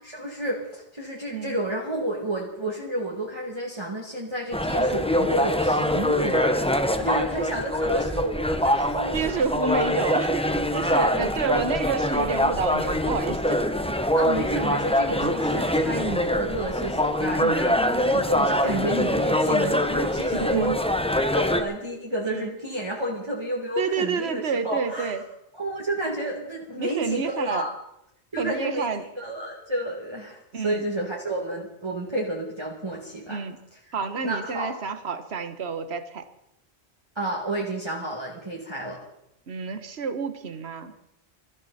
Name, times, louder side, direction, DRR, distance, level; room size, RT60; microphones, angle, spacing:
voice 1, 0.1-9.3 10.8-11.3 14.1-20.9 21.2-25.1 25.5-27.7 28.3-28.9 29.2-33.4 33.7-33.8 34.2-34.7 37.2-39.0, right 1 dB, 25° right, -4 dB, 2.3 m, -31 dB
sound 1, 4.5-21.6, left 1 dB, 5° left, 0.8 m, -24 dB
voice 2, 9.1-13.6 15.1-15.3 17.4-17.6 20.3-20.8 22.2-22.5 23.8-25.2 26.8-27.7 28.4-29.0 30.5-30.8 33.3-33.6 33.9-36.2 39.5-40.9, right 5 dB, 70° right, 10 dB, 1.4 m, -29 dB
22.0 x 14.0 x 4.2 m, 0.82 s
omnidirectional pair, 1.1 m